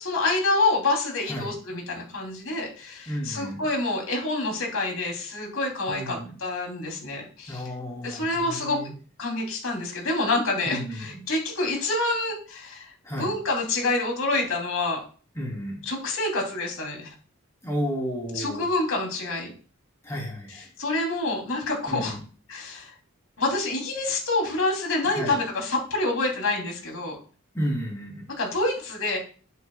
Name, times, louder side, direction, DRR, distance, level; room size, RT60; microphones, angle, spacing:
voice 1, 0.0-7.7 8.0-8.8 9.2-12.9 13.2-15.0 15.8-17.1 18.3-19.5 20.8-22.2 22.5-22.9 23.4-27.2 28.3-29.2, left 2 dB, 80° left, 1 dB, 3.5 m, -27 dB
voice 2, 3.1-3.6 5.9-6.3 7.5-8.9 10.7-11.1 13.0-13.3 15.4-15.8 17.6-18.7 20.0-20.7 21.9-22.2 25.0-25.4 27.5-28.3, equal, 15° left, -3 dB, 3.4 m, -32 dB
11.5 x 8.3 x 2.4 m, 0.39 s
head